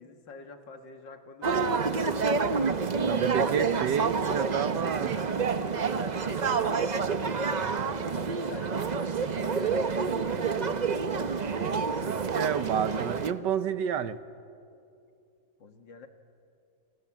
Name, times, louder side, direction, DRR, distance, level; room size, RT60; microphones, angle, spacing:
voice 1, 0.0-1.9 4.7-5.4 5.8-11.2 12.4-13.5 15.6-16.1, left 4 dB, 80° left, 6 dB, 2.4 m, -47 dB
sound 1, 1.4-13.3, right 5 dB, 50° right, 0.5 m, -28 dB
voice 2, 3.0-5.2 11.5-11.7 12.1-14.2, right 8 dB, 70° right, 12 dB, 1.5 m, -30 dB
Acoustic guitar / Strum, 9.3-12.7, right 1 dB, 90° right, 3.3 m, -55 dB
28.0 x 26.5 x 7.4 m, 2.6 s
omnidirectional pair, 2.0 m